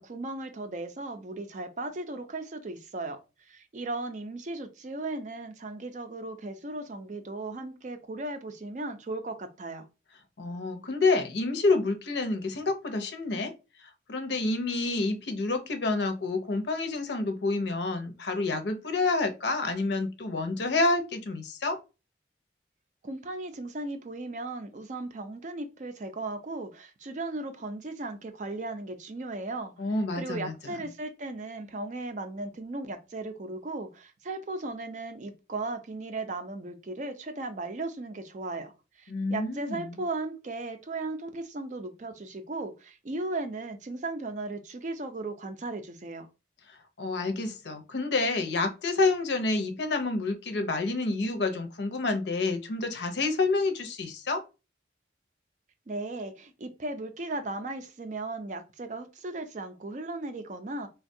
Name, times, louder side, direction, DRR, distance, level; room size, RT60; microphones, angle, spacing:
voice 1, 0.0-3.2 3.5-9.9 23.0-29.7 30.1-46.3 55.9-60.9, right 2 dB, 40° right, 0.4 m, -36 dB
voice 2, 10.4-13.5 13.8-21.8 29.8-30.8 39.1-40.0 47.0-54.4, left 3 dB, 70° left, 0.6 m, -28 dB
3.3 x 2.2 x 2.6 m
head